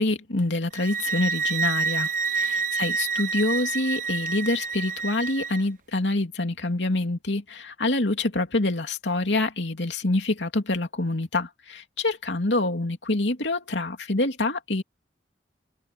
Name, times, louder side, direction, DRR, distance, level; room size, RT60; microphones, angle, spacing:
voice 1, 0.0-14.8, left 2 dB, 90° left, 2.7 m, -26 dB
sound 1, 0.7-5.6, right 5 dB, 45° right, 0.8 m, -28 dB
open air
head